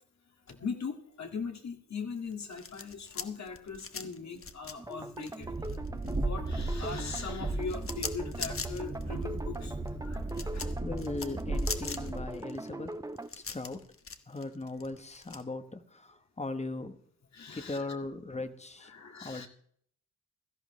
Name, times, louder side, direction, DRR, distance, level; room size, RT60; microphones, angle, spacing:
voice 1, 0.5-5.5 5.9-9.8 10.0-10.7 17.3-17.8 18.8-19.5, left 5 dB, 65° left, 3 dB, 2.0 m, -40 dB
sound 1, 2.3-6.2 6.5-15.4, left 5 dB, 45° left, 1.0 m, -41 dB
sound 2, 4.8-13.3, right 2 dB, 10° right, 0.5 m, -42 dB
Train, 5.4-12.3, right 2 dB, 25° right, 1.6 m, -35 dB
voice 2, 10.8-13.0 13.3-13.8 14.3-17.0 17.5-18.9 19.2-19.5, left 2 dB, 20° left, 9 dB, 1.1 m, -38 dB
16.5 x 14.0 x 3.2 m, 0.62 s
wide cardioid pair, 145°, 30 cm